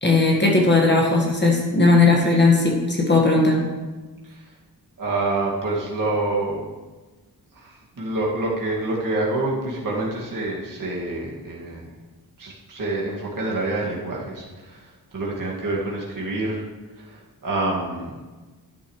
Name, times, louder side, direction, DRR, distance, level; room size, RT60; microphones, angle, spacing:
voice 1, 0.0-3.6, left 3 dB, 25° left, -2 dB, 1.7 m, -17 dB
voice 2, 5.0-6.7 7.5-11.9 12.4-16.7 17.0-18.2, right 2 dB, 55° right, -4 dB, 2.2 m, -27 dB
12.5 x 10.5 x 3.2 m, 1.3 s
wide cardioid pair, 150°, 39 cm